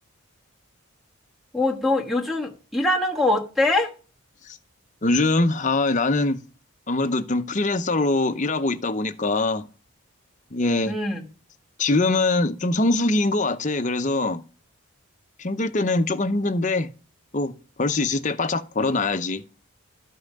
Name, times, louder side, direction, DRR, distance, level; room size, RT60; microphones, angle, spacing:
voice 1, 1.5-3.9 10.9-11.2, left 2 dB, ahead, 1.3 m, -23 dB
voice 2, 5.0-6.4 6.9-9.7 10.5-10.9 11.8-14.4 15.4-16.9 17.3-17.5 17.8-19.4, left 2 dB, 35° left, 0.7 m, -23 dB
13.0 x 5.6 x 6.5 m
head